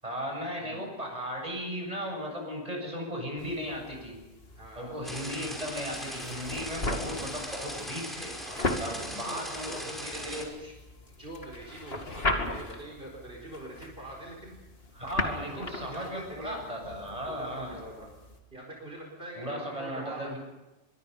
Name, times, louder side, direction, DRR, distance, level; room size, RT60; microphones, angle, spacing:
voice 1, 0.0-4.2 4.8-8.3 8.8-10.5 14.9-17.8 19.4-20.4, equal, 35° right, 1 dB, 7.6 m, -36 dB
sound 1, 3.4-18.4, left 2 dB, 75° left, 2.7 m, -38 dB
voice 2, 4.5-5.0 8.4-10.1 10.6-10.7 11.2-14.5 15.2-16.6 17.1-18.1 18.5-20.4, right 1 dB, 65° right, -1 dB, 4.7 m, -44 dB
sound 2, 5.0-10.5, equal, ahead, 5.5 m, -40 dB
25.0 x 22.5 x 5.5 m, 1.0 s
omnidirectional pair, 1.1 m